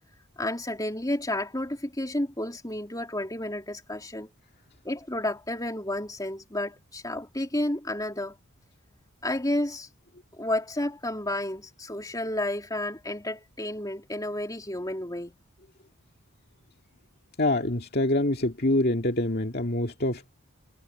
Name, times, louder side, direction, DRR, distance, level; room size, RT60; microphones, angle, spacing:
voice 1, 0.4-4.3 4.8-8.3 9.2-9.9 10.4-15.4, left 1 dB, 15° left, 3.1 m, -31 dB
voice 2, 17.4-20.3, left 1 dB, 45° left, 2.2 m, -25 dB
head